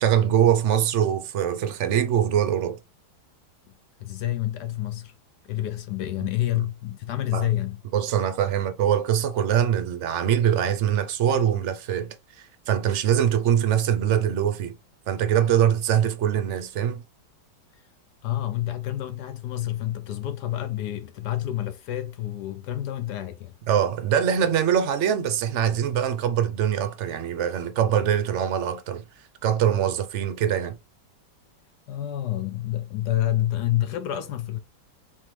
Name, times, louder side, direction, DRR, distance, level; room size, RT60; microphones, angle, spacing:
voice 1, 0.0-2.8 6.5-6.6 7.3-7.5 7.9-14.8 15.1-17.0 23.7-29.0 29.4-30.8, right 9 dB, 65° right, 0.7 m, -23 dB
voice 2, 4.0-5.1 5.4-7.8 18.2-23.5 31.9-34.6, left 13 dB, 70° left, 1.1 m, -28 dB
4.5 x 3.7 x 3.1 m
omnidirectional pair, 2.0 m